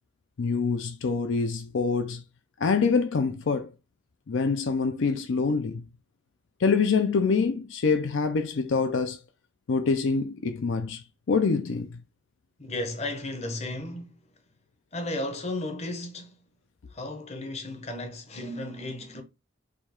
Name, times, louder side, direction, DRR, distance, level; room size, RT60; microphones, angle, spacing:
voice 1, 0.4-2.2 2.6-3.7 4.3-5.8 6.6-9.2 9.7-12.0, left 4 dB, 65° left, 0.5 m, -25 dB
voice 2, 12.6-14.2 14.9-16.3 16.9-19.2, left 1 dB, 30° left, 0.8 m, -34 dB
4.9 x 2.4 x 4.3 m
head